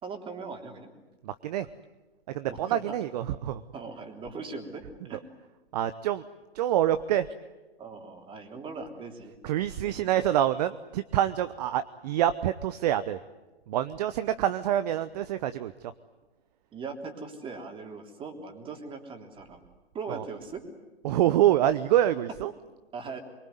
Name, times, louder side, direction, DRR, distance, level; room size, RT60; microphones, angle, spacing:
voice 1, 0.0-0.9 2.5-3.0 3.7-5.2 7.8-9.3 9.8-10.0 16.7-19.6 19.9-20.6 22.9-23.2, right 4 dB, 15° right, 4 dB, 3.4 m, -40 dB
voice 2, 1.2-1.7 2.3-3.6 5.7-6.3 6.5-7.3 9.4-13.2 13.7-15.7 20.1-20.2 21.0-22.5, right 12 dB, 40° right, 12 dB, 0.9 m, -26 dB
24.5 x 24.0 x 9.4 m, 1.1 s
hypercardioid pair, 130°, 32 cm